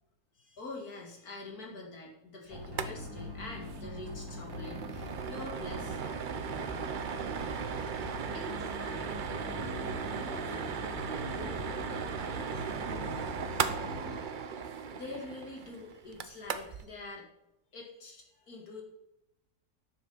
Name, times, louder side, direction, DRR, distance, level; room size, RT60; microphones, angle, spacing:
voice 1, 0.3-6.0 14.1-14.2 14.5-14.6 14.9-17.3 17.7-18.8, left 2 dB, 75° left, -1 dB, 2.5 m, -45 dB
sound 1, 2.5-14.2, left 1 dB, 15° right, 1.8 m, -43 dB
sound 2, 2.6-2.9 3.2-3.3 3.6-3.8 4.2-16.9, right 6 dB, 55° right, 0.5 m, -37 dB
voice 2, 8.3-13.6, left 1 dB, 35° left, 1 dB, 2.0 m, -49 dB
10.0 x 7.1 x 5.5 m, 0.87 s
omnidirectional pair, 1.6 m